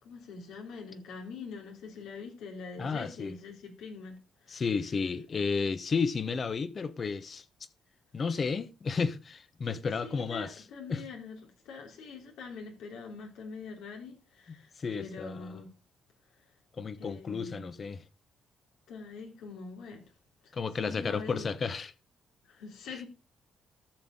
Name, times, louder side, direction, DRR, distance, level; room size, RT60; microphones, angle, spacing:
voice 1, 0.0-4.6 10.0-15.7 16.4-16.5 17.0-17.7 18.9-20.0 20.4-20.5 20.8-21.5 22.4-23.1, left 4 dB, 90° left, 3.4 m, -44 dB
voice 2, 2.8-3.3 4.5-7.4 8.1-10.5 10.9-11.0 14.8-15.5 16.8-18.0 20.5-21.9, left 5 dB, 40° left, 1.2 m, -32 dB
13.5 x 7.1 x 3.9 m
cardioid pair, 90°, 0 cm